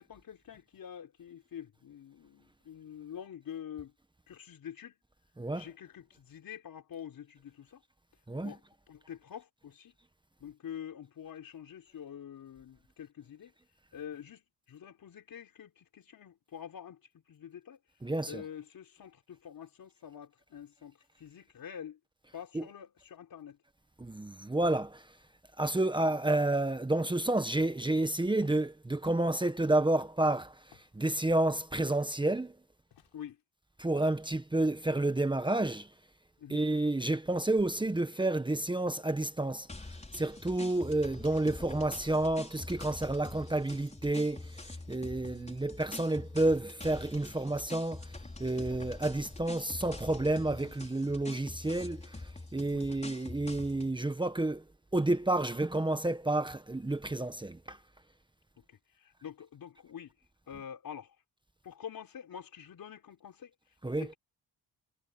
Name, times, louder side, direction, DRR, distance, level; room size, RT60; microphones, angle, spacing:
voice 1, 0.0-3.9 4.3-5.0 5.5-7.8 8.4-8.6 8.9-9.9 10.4-13.5 13.9-14.4 14.7-17.0 17.3-17.8 18.2-22.0 22.3-23.6 33.1-33.4 36.4-36.7 45.2-45.5 50.5-50.7 52.7-52.9 58.7-60.1 60.5-61.1 61.6-63.5 64.0-64.1, left 9 dB, 55° left, 4.1 m, -46 dB
voice 2, 5.4-5.7 8.3-8.6 18.0-18.4 22.5-22.7 24.0-25.1 25.6-32.5 33.8-35.9 36.5-39.7 40.1-48.1 48.4-54.6 54.9-57.8 63.8-64.1, right 2 dB, 10° right, 1.4 m, -30 dB
Walk footsteps, 28.4-28.7 29.3-29.7 30.7-31.0 31.8-32.1 32.9-33.4, left 11 dB, 75° left, 6.6 m, -63 dB
sound 1, 39.7-53.9, left 2 dB, 15° left, 5.4 m, -45 dB
cardioid pair, 90°, 40 cm